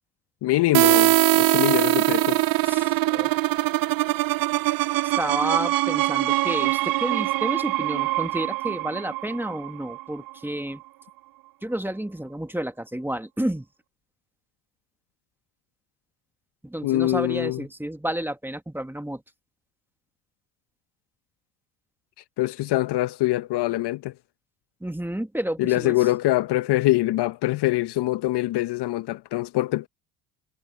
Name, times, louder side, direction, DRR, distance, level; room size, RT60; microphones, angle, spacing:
voice 1, 0.4-2.4 16.8-17.6 22.4-24.1 25.6-29.9, left 17 dB, 55° left, 1.0 m, -24 dB
sound 1, 0.7-10.3, right 19 dB, 45° right, 0.5 m, -22 dB
voice 2, 2.6-3.4 5.0-10.8 11.6-13.7 16.6-19.2 24.8-26.1, right 1 dB, 5° right, 2.0 m, -31 dB
hypercardioid pair, 70°, 48 cm